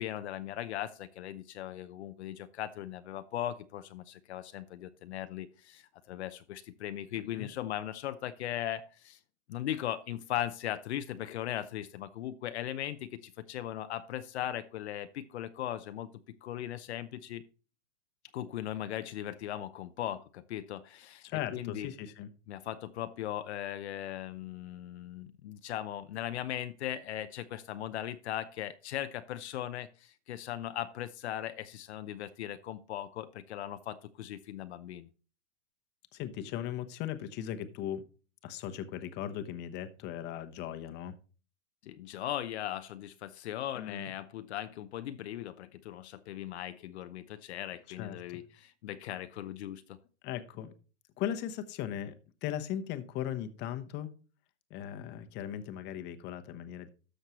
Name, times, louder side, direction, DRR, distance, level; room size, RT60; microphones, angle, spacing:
voice 1, 0.0-9.2 9.5-16.1 16.4-17.4 18.3-21.2 21.5-21.9 22.5-35.1 41.8-50.0, left 12 dB, 65° left, 11 dB, 0.7 m, -38 dB
voice 2, 7.2-7.5 21.2-22.3 36.1-38.0 38.4-41.2 43.7-44.1 47.9-48.4 50.2-50.7 51.2-52.1 52.4-54.1 54.7-56.9, left 10 dB, 30° left, 10 dB, 1.0 m, -38 dB
13.0 x 6.5 x 3.0 m, 0.36 s
hypercardioid pair, 130°, 36 cm